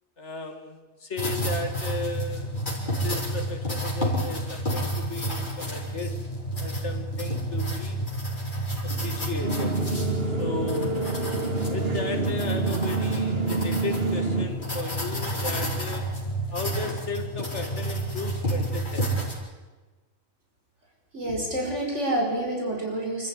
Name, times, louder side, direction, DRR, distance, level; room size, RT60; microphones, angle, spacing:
voice 1, 0.2-2.6 3.0-6.2 6.6-8.0 8.8-9.8 10.4-11.0 11.7-16.2 16.5-19.1, left 3 dB, 70° left, 7 dB, 2.4 m, -35 dB
sound 1, 1.2-19.3, right 1 dB, 40° left, 4.7 m, -30 dB
sound 2, 9.4-14.4, right 3 dB, 55° right, 2.5 m, -28 dB
voice 2, 21.1-23.3, right 1 dB, 70° right, 0 dB, 5.7 m, -28 dB
27.0 x 14.0 x 9.7 m, 1.2 s
omnidirectional pair, 1.2 m